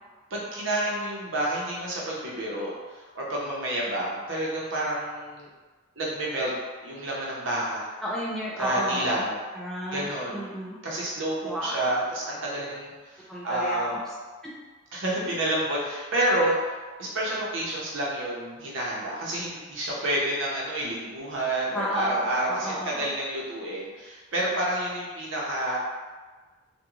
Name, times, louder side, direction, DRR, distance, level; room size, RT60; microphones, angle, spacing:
voice 1, 0.3-5.5 6.0-6.5 6.8-7.9 8.6-9.4 9.9-10.4 10.8-14.0 14.9-16.7 17.0-25.8, right 1 dB, 70° right, -5 dB, 0.7 m, -29 dB
voice 2, 8.0-9.3 9.5-10.8 11.4-11.9 13.3-14.1 21.7-23.1, equal, ahead, -7 dB, 0.4 m, -32 dB
2.4 x 2.2 x 2.9 m, 1.3 s
head